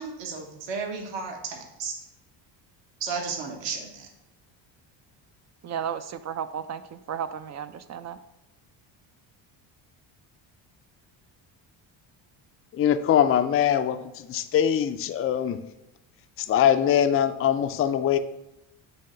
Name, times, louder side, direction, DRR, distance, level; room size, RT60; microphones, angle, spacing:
voice 1, 0.0-1.9 3.0-4.1, right 5 dB, 65° right, 1 dB, 1.3 m, -33 dB
voice 2, 5.6-8.2, right 8 dB, 35° right, 12 dB, 0.4 m, -34 dB
voice 3, 12.7-15.6 16.4-18.2, left 9 dB, 30° left, 9 dB, 0.4 m, -22 dB
7.6 x 2.9 x 5.5 m, 0.91 s
cardioid pair, 95°, 48 cm